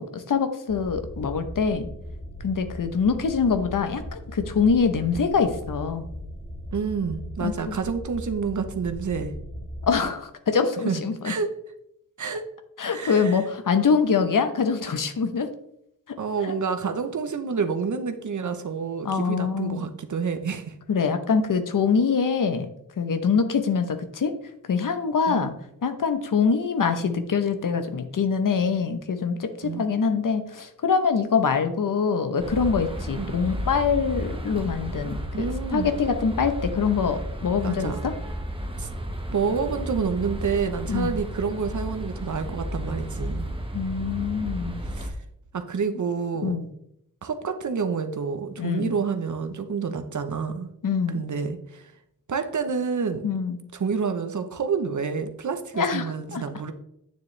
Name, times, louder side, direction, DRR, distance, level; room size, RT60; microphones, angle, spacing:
voice 1, 0.0-1.9 2.4-6.1 7.4-7.8 9.8-11.3 12.8-15.5 16.4-16.5 19.0-19.9 20.9-22.7 23.0-24.3 24.7-25.5 25.8-35.5 35.7-38.1 40.9-41.1 43.7-44.8 46.4-46.7 48.6-48.9 50.8-51.2 53.2-53.6 55.7-56.4, left 5 dB, 65° left, 9 dB, 0.9 m, -24 dB
sound 1, 0.7-10.0, equal, 40° left, 3.1 m, -38 dB
voice 2, 6.7-9.3 10.8-11.5 12.2-12.4 12.9-13.4 16.2-20.7 25.3-25.5 29.6-29.8 33.2-33.3 35.3-35.9 37.6-38.1 38.8-38.9 39.3-43.5 44.9-45.2 45.5-46.6 47.2-50.7 51.1-51.9 52.3-53.3 53.7-56.7, right 5 dB, 55° right, 7 dB, 0.9 m, -28 dB
sound 2, 32.4-45.1, equal, 15° right, 1.2 m, -33 dB
9.4 x 7.0 x 3.2 m, 0.77 s
wide cardioid pair, 90°, 35 cm